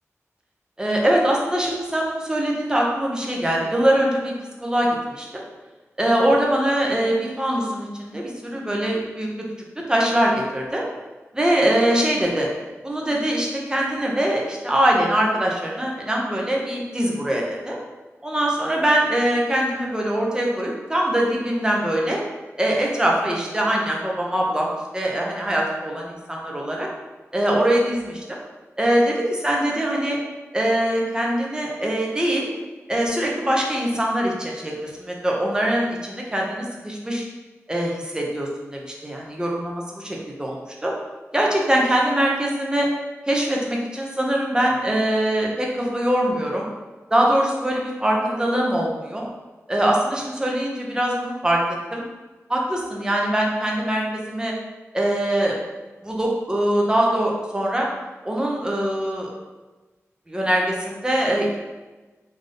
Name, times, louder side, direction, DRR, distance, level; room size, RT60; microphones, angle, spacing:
voice 1, 0.8-4.3 4.6-5.4 6.0-9.3 9.9-10.8 11.3-12.5 12.8-17.8 18.2-22.2 22.6-24.7 24.9-26.9 27.3-28.4 28.8-29.1 29.4-30.2 30.5-32.5 32.9-37.2 37.7-40.9 41.3-42.9 43.3-46.7 47.1-49.3 49.7-51.6 51.9-52.0 52.5-54.5 54.9-55.5 56.0-57.9 58.2-59.3 60.3-61.6, right 1 dB, 15° right, -2 dB, 0.7 m, -22 dB
3.4 x 2.6 x 3.8 m, 1.2 s
wide cardioid pair, 120°, 5 cm